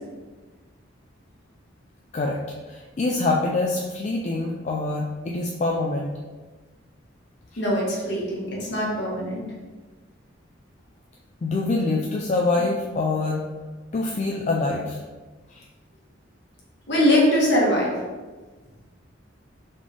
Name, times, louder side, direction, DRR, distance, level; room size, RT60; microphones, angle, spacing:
voice 1, 2.7-6.1 11.4-13.4 13.9-15.0, left 3 dB, 35° left, -1 dB, 0.3 m, -25 dB
voice 2, 7.6-9.4 16.9-17.9, left 1 dB, 60° left, -4 dB, 1.3 m, -22 dB
4.0 x 3.3 x 3.3 m, 1.3 s
head